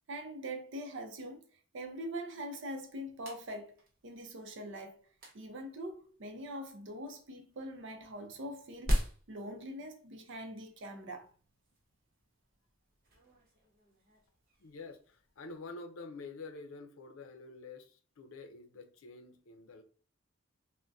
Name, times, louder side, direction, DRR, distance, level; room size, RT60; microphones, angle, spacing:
voice 1, 0.1-5.1 5.3-11.3, right 1 dB, 60° right, 0.6 m, -43 dB
sound 1, 2.8-15.6, equal, 45° right, 0.9 m, -42 dB
voice 2, 14.6-19.8, left 3 dB, 90° left, 0.5 m, -48 dB
2.6 x 2.1 x 3.4 m
head